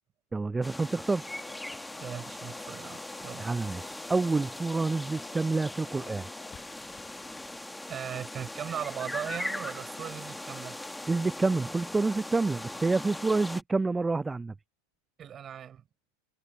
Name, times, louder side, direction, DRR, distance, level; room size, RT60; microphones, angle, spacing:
voice 1, 0.3-1.3 3.4-6.3 11.1-14.5, right 3 dB, 15° right, 0.6 m, -28 dB
sound 1, 0.6-13.6, left 1 dB, 5° left, 2.0 m, -40 dB
sound 2, 1.3-7.6, left 7 dB, 25° left, 5.9 m, -51 dB
voice 2, 2.0-3.5 7.9-10.8 15.2-15.8, right 9 dB, 30° right, 6.5 m, -38 dB
hypercardioid pair, 100°, 0 cm